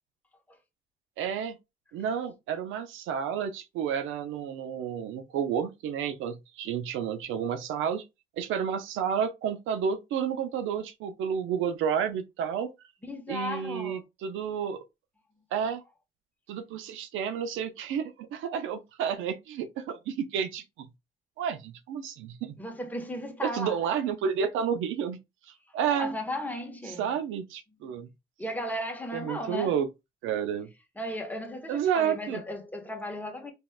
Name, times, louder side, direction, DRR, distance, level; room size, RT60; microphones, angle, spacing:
voice 1, 1.2-1.6 1.9-8.0 8.4-12.7 13.3-14.8 15.5-15.8 16.5-20.9 21.4-22.6 23.4-25.2 25.7-26.1 26.9-28.1 29.1-29.9 30.2-30.7 31.7-32.4, right 8 dB, 90° right, 0.5 m, -30 dB
voice 2, 13.1-14.0 15.5-15.7 22.6-23.9 25.9-27.1 27.8-27.9 28.4-29.8 31.0-33.5, left 1 dB, 10° left, 1.2 m, -36 dB
4.5 x 3.1 x 2.3 m
cardioid pair, 90°, 20 cm